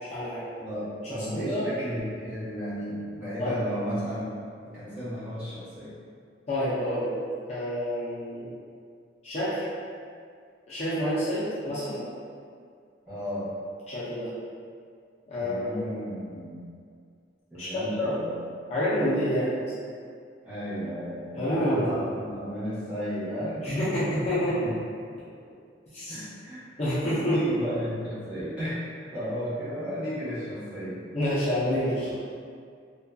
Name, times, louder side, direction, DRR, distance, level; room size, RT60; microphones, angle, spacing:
voice 1, 0.0-0.5 1.0-1.7 3.4-3.5 6.5-7.1 7.5-8.5 9.2-9.6 10.7-12.0 13.9-14.3 15.3-15.8 17.6-18.2 18.7-19.6 21.3-21.9 23.6-24.6 25.9-26.2 26.8-27.4 31.1-32.1, equal, 35° left, -11 dB, 0.5 m, -28 dB
voice 2, 0.6-4.3 4.6-5.9 13.1-13.5 15.3-16.7 17.5-18.4 20.4-23.6 24.6-24.7 26.1-26.7 27.2-28.8 29.1-31.0, equal, 10° right, -16 dB, 0.9 m, -34 dB
2.6 x 2.2 x 2.2 m, 2.2 s
head